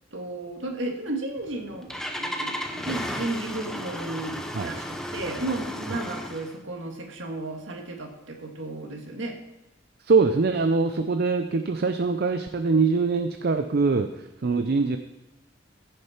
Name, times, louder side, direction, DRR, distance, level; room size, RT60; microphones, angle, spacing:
voice 1, 0.1-1.9 2.2-9.4, right 2 dB, 65° right, 2 dB, 2.0 m, -33 dB
Engine starting, 1.4-6.6, equal, 5° left, 0.8 m, -34 dB
voice 2, 10.0-15.0, right 4 dB, 50° right, 7 dB, 0.5 m, -23 dB
15.5 x 6.6 x 4.4 m, 1.1 s
head